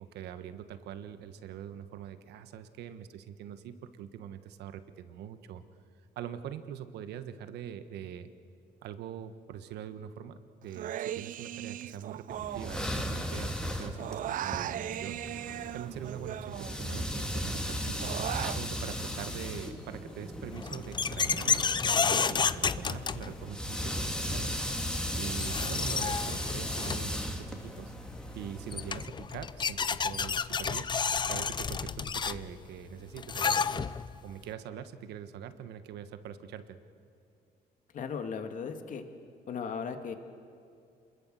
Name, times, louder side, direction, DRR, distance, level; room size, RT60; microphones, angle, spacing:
voice 1, 0.0-5.6 6.1-8.3 8.8-15.2 15.7-18.1 18.5-24.6 25.2-27.9 28.3-30.9 31.3-33.9 34.2-36.8, right 9 dB, 80° right, 11 dB, 1.4 m, -43 dB
Human voice, 10.7-13.4 13.6-17.1 17.5-18.6, right 12 dB, 55° right, 0.5 m, -38 dB
sound 1, 12.3-29.1, equal, 5° left, 2.4 m, -36 dB
sound 2, 20.5-23.7 25.0-25.1 25.3-27.2 28.3-28.4 28.7-34.2, left 6 dB, 25° left, 0.6 m, -31 dB
voice 2, 37.9-39.0 39.5-40.1, left 6 dB, 50° left, 7 dB, 2.2 m, -36 dB
27.5 x 21.0 x 7.8 m, 2.4 s
cardioid pair, 110°, 17 cm